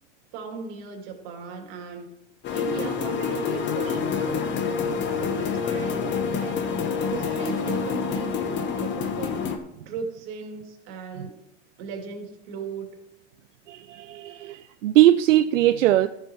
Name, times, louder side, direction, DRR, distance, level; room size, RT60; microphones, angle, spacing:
voice 1, 0.3-2.1 2.5-4.3 5.2-6.6 7.1-9.3 9.9-11.3 11.8-12.9, right 6 dB, 55° right, 2 dB, 2.7 m, -37 dB
sound 1, 2.4-9.6, left 6 dB, 30° left, 1.1 m, -27 dB
voice 2, 13.7-16.1, right 14 dB, 85° right, 10 dB, 0.5 m, -20 dB
14.0 x 8.1 x 3.1 m, 0.85 s
hypercardioid pair, 120°, 37 cm